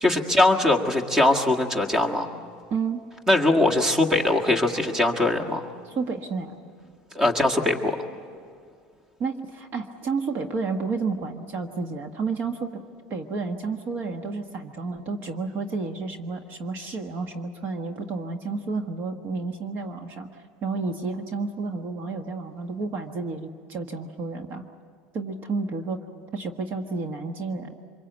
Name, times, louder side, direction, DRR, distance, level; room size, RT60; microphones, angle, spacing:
voice 1, 0.0-2.3 3.3-5.6 7.1-8.0, left 2 dB, 15° right, 5 dB, 1.8 m, -21 dB
voice 2, 2.7-3.0 5.8-6.6 9.2-12.8 13.1-20.3 20.6-24.6 25.1-26.0 26.3-27.7, right 4 dB, 45° right, 6 dB, 1.4 m, -31 dB
25.5 x 23.0 x 8.2 m, 2.2 s
cardioid pair, 135°, 5 cm